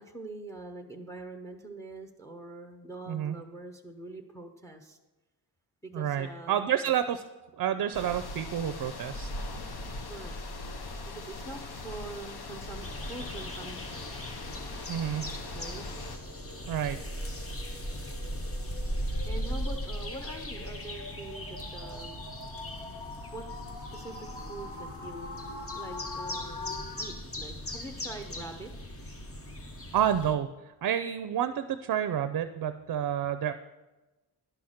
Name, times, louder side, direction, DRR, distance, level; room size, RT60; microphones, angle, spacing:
voice 1, 0.0-5.0 5.8-6.9 10.0-10.4 11.1-14.2 15.5-15.8 19.3-22.2 23.3-23.5 23.7-28.7, right 2 dB, 5° left, 6 dB, 0.7 m, -44 dB
voice 2, 5.9-7.2 7.6-9.3 14.9-15.4 16.7-17.0 29.9-30.5 30.8-33.5, right 10 dB, 55° right, 11 dB, 0.5 m, -29 dB
sound 1, 7.9-16.2, left 2 dB, 65° left, 1.0 m, -40 dB
sound 2, 12.8-30.3, equal, 35° left, 1.0 m, -38 dB
sound 3, 14.0-27.1, left 3 dB, 85° left, 1.8 m, -45 dB
11.0 x 5.8 x 6.4 m, 1.1 s
wide cardioid pair, 130°, 41 cm